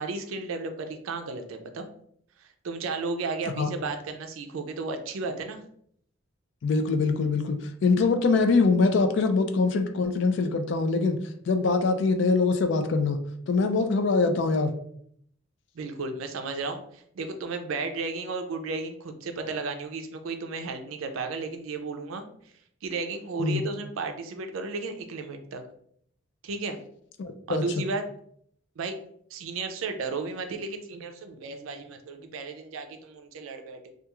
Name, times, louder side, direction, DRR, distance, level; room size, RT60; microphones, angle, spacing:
voice 1, 0.0-1.9 2.4-5.6 15.7-22.5 22.8-25.6 26.4-26.8 27.5-28.0 28.8-29.0 29.3-33.9, right 4 dB, 75° right, 6 dB, 0.4 m, -34 dB
voice 2, 6.6-11.2 11.5-13.2 13.5-14.7 23.4-23.6 27.2-27.6, left 4 dB, 60° left, 7 dB, 0.3 m, -23 dB
2.3 x 2.3 x 2.9 m, 0.66 s
head